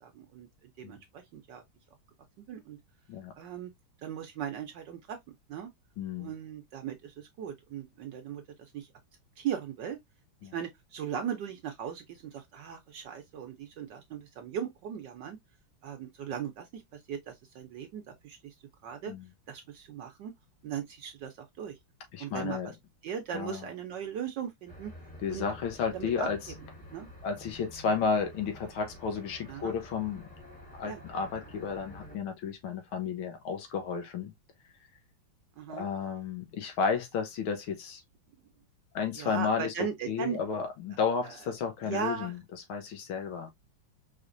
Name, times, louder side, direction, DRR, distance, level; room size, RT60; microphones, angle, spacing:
voice 1, 0.0-1.6 2.5-2.8 3.4-3.7 4.0-5.2 5.5-5.7 6.2-8.9 9.4-10.0 10.4-15.4 15.8-18.5 18.8-19.1 19.5-20.3 20.6-21.8 22.2-22.7 23.0-24.9 25.3-25.5 25.9-26.3 26.9-27.1 29.5-29.7 30.8-31.0 35.6-35.9 39.2-40.4 41.2-41.3 41.8-42.3, right 8 dB, 65° right, 1.2 m, -38 dB
voice 2, 6.0-6.3 10.4-10.6 19.1-19.3 22.1-22.7 23.3-23.7 25.2-26.4 27.2-30.3 30.7-34.3 35.7-38.0 38.9-39.7 40.1-42.4 42.7-43.5, left 5 dB, 80° left, 2.0 m, -32 dB
sound 1, 24.7-32.2, left 1 dB, 5° left, 1.0 m, -49 dB
5.0 x 3.3 x 2.5 m
omnidirectional pair, 2.3 m